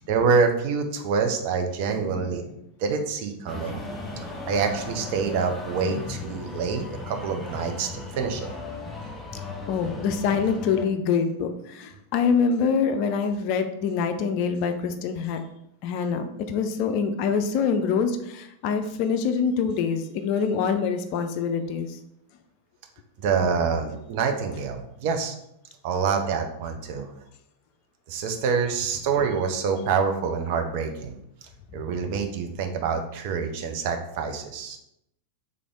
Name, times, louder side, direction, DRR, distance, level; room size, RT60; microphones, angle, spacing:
voice 1, 0.1-2.4 2.8-3.8 4.5-7.9 8.2-8.5 23.2-25.4 25.8-27.1 28.1-31.2 31.7-34.8, right 5 dB, 45° right, 5 dB, 0.5 m, -26 dB
voice 2, 2.0-2.5 3.9-4.2 5.9-6.0 9.7-15.4 15.8-22.0, left 6 dB, 45° left, 7 dB, 0.4 m, -25 dB
sound 1, 3.5-10.9, left 2 dB, 10° left, 0.7 m, -37 dB
3.4 x 3.3 x 3.7 m, 0.79 s
figure-of-eight pair, 90°, 0 cm